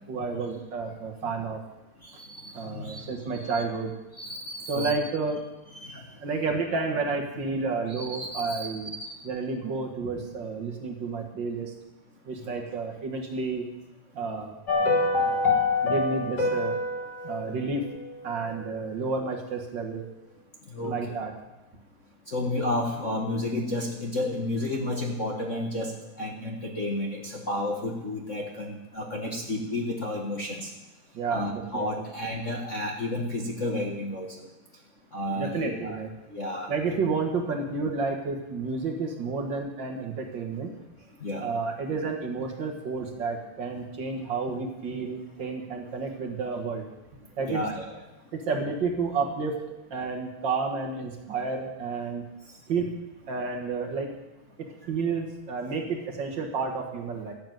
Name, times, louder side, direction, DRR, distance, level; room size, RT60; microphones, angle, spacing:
voice 1, 0.1-1.6 2.5-4.0 4.7-5.5 5.9-8.9 9.2-11.7 12.3-13.6 14.1-14.6 15.2-15.5 15.8-16.8 17.2-17.9 18.2-20.1 20.8-21.3 31.1-31.8 35.3-36.1 36.7-40.7 41.4-46.8 47.4-47.6 48.3-49.6 49.9-52.2 52.7-52.9 53.3-54.1 54.6-57.3, right 4 dB, 50° right, 3 dB, 1.5 m, -31 dB
voice 2, 2.2-3.1 3.5-3.6 4.2-5.0 5.7-5.9 7.9-9.1 20.7-20.9 22.3-25.9 26.2-30.7 31.3-34.3 35.1-36.0 36.3-36.7 41.2-41.4 44.5-44.6 47.5-48.0, left 1 dB, 50° left, 0 dB, 0.8 m, -31 dB
sound 1, 14.7-19.0 19.2-19.3, left 3 dB, 35° left, 2.6 m, -27 dB
13.0 x 7.6 x 9.1 m, 1.0 s
omnidirectional pair, 3.6 m